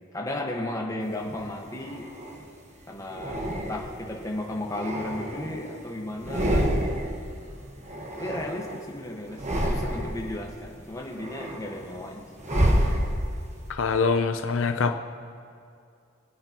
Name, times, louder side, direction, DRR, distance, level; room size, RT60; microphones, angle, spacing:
voice 1, 0.1-2.1 2.9-6.8 8.2-9.4 9.7-12.3, left 1 dB, 15° left, -1 dB, 1.4 m, -34 dB
sound 1, 1.2-2.5 3.1-4.1 4.5-5.8 6.1-7.2 7.5-8.9 9.3-10.3 10.8-13.5, equal, 35° right, 1.3 m, -28 dB
voice 2, 13.7-15.0, left 4 dB, 75° left, 7 dB, 0.6 m, -24 dB
25.0 x 8.9 x 3.0 m, 2.4 s
head